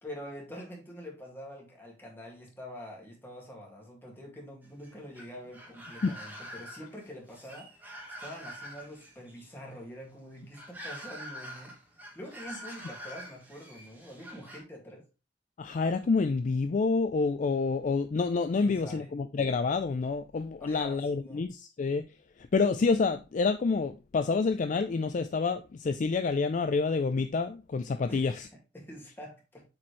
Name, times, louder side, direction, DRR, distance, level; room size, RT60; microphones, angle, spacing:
voice 1, 0.0-7.7 8.2-11.7 12.2-15.0 18.6-19.1 20.6-21.4 28.1-28.4 28.7-29.6, equal, 10° left, 2.0 m, -45 dB
sound 1, 4.6-14.6, equal, 10° right, 1.5 m, -46 dB
voice 2, 15.6-22.1 22.5-28.5, left 4 dB, 40° left, 0.4 m, -28 dB
7.5 x 4.3 x 3.1 m
head